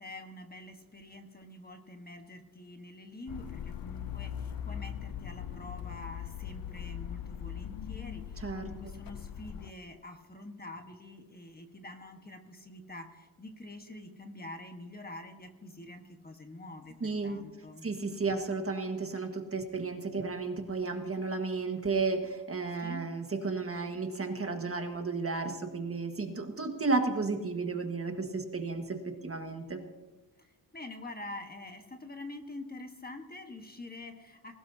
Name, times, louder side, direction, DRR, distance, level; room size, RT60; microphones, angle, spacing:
voice 1, 0.0-17.9 22.8-23.1 30.4-34.6, left 2 dB, 25° left, 4 dB, 1.3 m, -46 dB
sound 1, 3.3-9.7, left 9 dB, 60° left, 0.6 m, -40 dB
voice 2, 8.4-8.7 17.0-17.4 17.8-29.8, right 3 dB, 35° right, 4 dB, 1.5 m, -33 dB
20.5 x 18.0 x 2.7 m, 1.1 s
wide cardioid pair, 150°, 40 cm